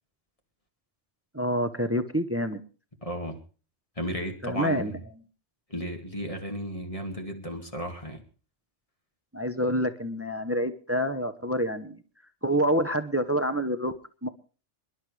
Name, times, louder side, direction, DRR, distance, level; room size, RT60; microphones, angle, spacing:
voice 1, 1.3-2.6 4.4-4.9 9.3-12.0 12.4-13.9 14.2-14.3, equal, 15° right, 10 dB, 0.9 m, -27 dB
voice 2, 3.0-3.4 4.0-4.9 5.7-8.2, equal, 30° left, 3 dB, 2.4 m, -34 dB
26.0 x 11.5 x 3.4 m, 0.37 s
omnidirectional pair, 1.2 m